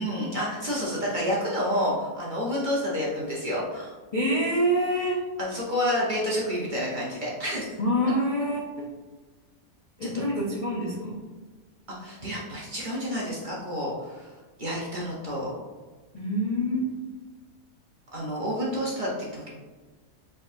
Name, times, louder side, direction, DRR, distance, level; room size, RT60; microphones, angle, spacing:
voice 1, 0.0-4.0 5.4-7.8 10.0-10.2 12.0-14.3 14.6-15.5 18.1-19.5, equal, 40° right, -5 dB, 0.9 m, -29 dB
voice 2, 4.1-5.2 7.8-8.8 10.0-11.2 16.1-16.9, equal, 40° left, -5 dB, 0.5 m, -26 dB
4.5 x 3.8 x 2.6 m, 1.3 s
omnidirectional pair, 1.6 m